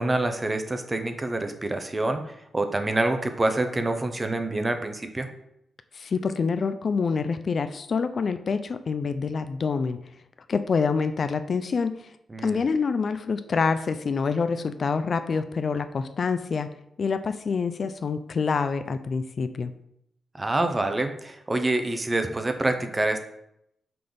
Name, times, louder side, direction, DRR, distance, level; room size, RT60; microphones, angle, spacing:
voice 1, 0.0-2.2 2.5-5.3 12.3-12.7 20.4-23.2, right 2 dB, 20° right, 7 dB, 0.6 m, -26 dB
voice 2, 5.9-10.0 10.5-11.9 12.4-16.7 17.0-19.7, left 5 dB, 45° left, 10 dB, 0.3 m, -26 dB
5.9 x 3.4 x 5.3 m, 0.78 s
wide cardioid pair, 120°, 0 cm